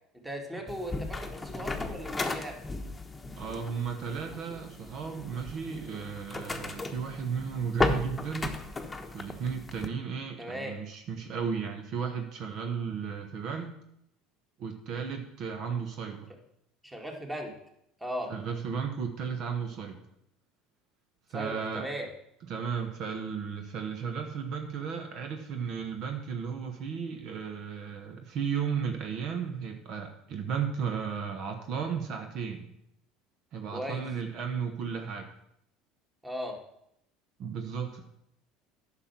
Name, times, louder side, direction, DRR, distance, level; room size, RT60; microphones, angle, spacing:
voice 1, 0.1-2.6 10.4-10.8 16.8-17.5 18.0-18.3 21.3-22.1 33.7-34.0 36.2-36.6, equal, 10° right, 2 dB, 2.1 m, -37 dB
sound 1, 0.7-9.9, left 2 dB, 15° left, 1.1 m, -35 dB
voice 2, 3.4-8.6 9.1-13.7 14.6-16.3 18.3-20.0 21.3-21.9 22.5-32.7 33.5-35.3 37.4-38.0, right 6 dB, 60° right, 5 dB, 1.2 m, -34 dB
9.8 x 6.0 x 6.0 m, 0.76 s
hypercardioid pair, 85°, 0 cm